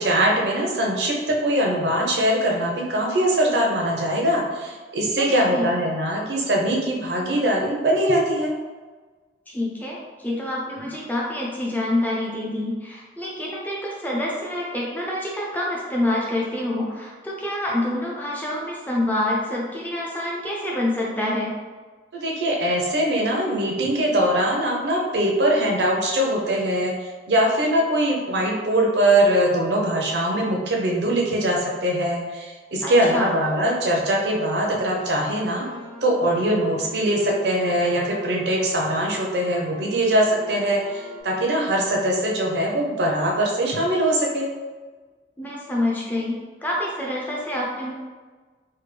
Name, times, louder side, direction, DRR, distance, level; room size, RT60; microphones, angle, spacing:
voice 1, 0.0-8.5 22.1-35.6 36.0-44.5, right 1 dB, 65° right, -1 dB, 0.6 m, -22 dB
voice 2, 5.2-5.7 9.5-21.6 32.8-33.3 45.4-47.9, left 1 dB, 10° left, -4 dB, 0.5 m, -27 dB
sound 1, 33.3-41.2, equal, 55° left, 1.1 m, -41 dB
3.4 x 2.2 x 3.3 m, 1.4 s
head